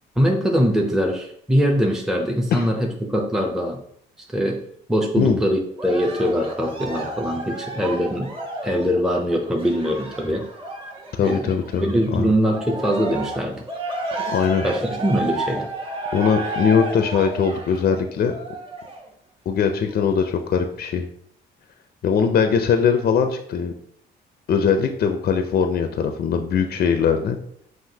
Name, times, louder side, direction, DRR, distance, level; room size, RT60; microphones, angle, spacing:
voice 1, 0.2-3.8 4.3-4.6 4.9-8.3 8.6-10.5 11.2-11.5 11.8-13.6 14.6-15.7, equal, 5° right, 2 dB, 0.6 m, -22 dB
Cheering, 5.8-12.1 12.5-19.1 19.7-19.8, right 2 dB, 25° right, 1.0 m, -32 dB
voice 2, 11.1-12.3 14.3-14.6 16.1-18.3 19.5-21.1 22.0-23.7 24.5-27.4, left 6 dB, 50° left, 7 dB, 0.4 m, -21 dB
5.7 x 2.7 x 2.7 m, 0.68 s
cardioid pair, 90°, 20 cm